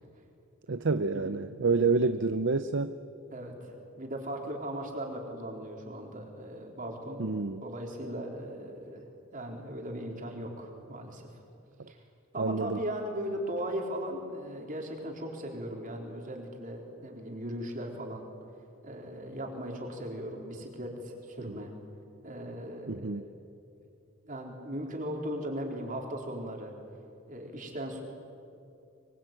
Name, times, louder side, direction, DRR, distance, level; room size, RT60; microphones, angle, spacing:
voice 1, 0.7-2.9 7.2-7.6 12.4-12.8 21.5-21.6 22.9-23.2, right 4 dB, 60° right, 11 dB, 0.7 m, -28 dB
voice 2, 3.3-7.2 7.6-9.1 9.3-11.3 11.9-12.0 12.3-18.2 18.8-21.7 22.2-23.2 24.2-26.7 27.3-28.0, right 1 dB, 40° right, 1 dB, 4.1 m, -38 dB
24.0 x 23.5 x 9.1 m, 2.6 s
head